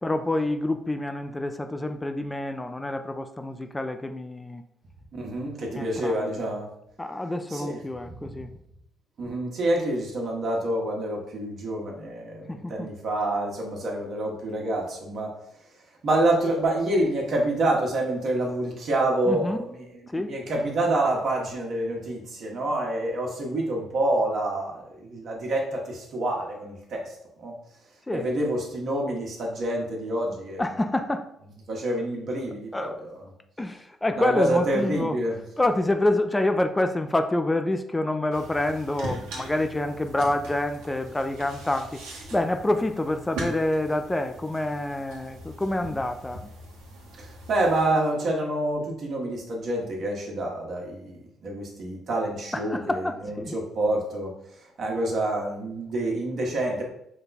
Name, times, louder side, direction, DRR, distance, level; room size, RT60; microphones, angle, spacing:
voice 1, 0.0-4.6 5.8-6.3 7.0-8.5 12.5-12.9 19.3-19.6 20.1-20.3 28.1-28.3 30.6-31.3 32.7-33.0 33.6-35.2 35.6-42.0 42.3-46.4 52.5-53.6, left 1 dB, 15° left, 7 dB, 0.4 m, -27 dB
voice 2, 5.1-6.7 7.5-7.8 8.2-8.3 9.2-15.4 16.0-27.6 28.1-30.6 31.7-33.1 34.2-35.4 47.2-56.8, right 1 dB, 60° right, 0 dB, 1.3 m, -27 dB
sound 1, 38.3-47.8, right 1 dB, 85° right, 1.2 m, -41 dB
5.3 x 2.2 x 4.1 m, 0.77 s
supercardioid pair, 65°, 0 cm